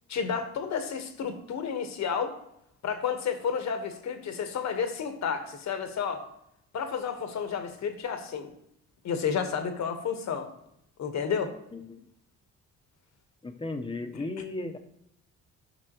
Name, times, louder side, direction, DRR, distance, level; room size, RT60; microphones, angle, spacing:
voice 1, 0.1-2.4 2.8-6.2 6.7-8.5 9.0-10.5 11.0-11.5, left 6 dB, 65° left, 7 dB, 1.4 m, -31 dB
voice 2, 13.4-14.8, left 2 dB, 15° left, 5 dB, 1.0 m, -35 dB
11.5 x 6.0 x 3.0 m, 0.78 s
cardioid pair, 90°, 30 cm